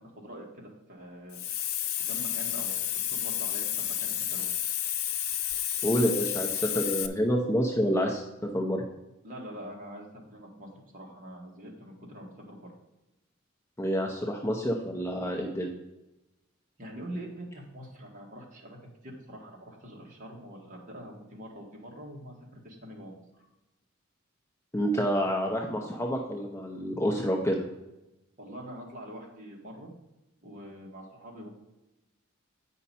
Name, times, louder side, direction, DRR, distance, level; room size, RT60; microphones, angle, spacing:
voice 1, 0.0-1.7 2.1-4.5 9.2-12.7 16.8-23.2 28.4-29.9 30.4-31.5, equal, 40° right, -2 dB, 1.8 m, -44 dB
Hiss, 1.3-7.1, left 10 dB, 90° left, 0.6 m, -31 dB
voice 2, 5.8-8.2 8.5-8.8 13.8-15.7 24.7-27.6, equal, 10° left, 0 dB, 0.7 m, -28 dB
8.6 x 5.5 x 4.2 m, 0.97 s
head